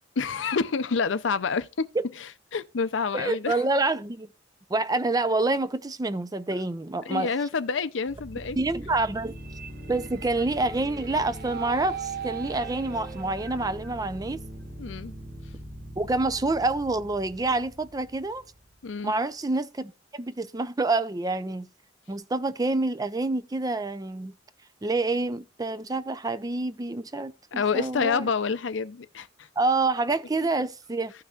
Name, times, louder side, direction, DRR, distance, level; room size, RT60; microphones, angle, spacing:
voice 1, 0.2-1.9 2.2-3.6 7.1-8.6 14.8-15.1 18.8-19.1 27.5-29.5 30.4-30.5, left 5 dB, 85° left, 0.6 m, -28 dB
voice 2, 3.1-4.3 4.7-7.3 8.6-9.4 9.9-14.4 16.0-18.4 19.0-21.7 22.1-24.3 24.8-28.3 29.6-31.1, right 2 dB, 20° right, 0.5 m, -27 dB
sound 1, 8.1-19.0, right 3 dB, 55° right, 1.7 m, -39 dB
15.0 x 5.8 x 2.4 m
head